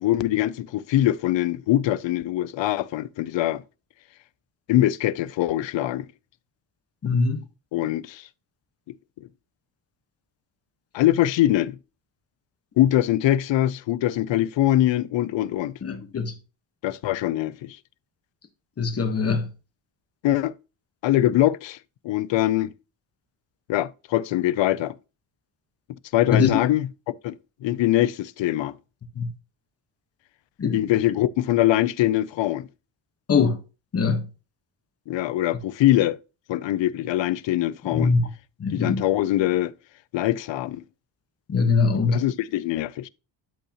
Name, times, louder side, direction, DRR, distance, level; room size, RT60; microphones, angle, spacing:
voice 1, 0.0-3.6 4.7-6.1 7.7-8.3 10.9-11.8 12.8-15.8 16.8-17.8 20.2-20.5 21.0-21.8 22.0-22.7 23.7-24.9 26.1-26.9 27.2-28.7 30.7-32.7 35.1-36.2 36.5-38.1 38.7-39.7 40.1-40.8 42.1-43.1, left 14 dB, 75° left, 0.6 m, -23 dB
voice 2, 7.0-7.4 15.8-16.3 18.8-19.5 26.3-26.5 29.2-29.3 30.6-30.8 33.3-33.6 33.9-34.3 37.9-38.3 38.6-39.1 41.5-42.2, left 5 dB, 30° left, 1.3 m, -22 dB
12.5 x 5.5 x 2.9 m
wide cardioid pair, 170°, 45 cm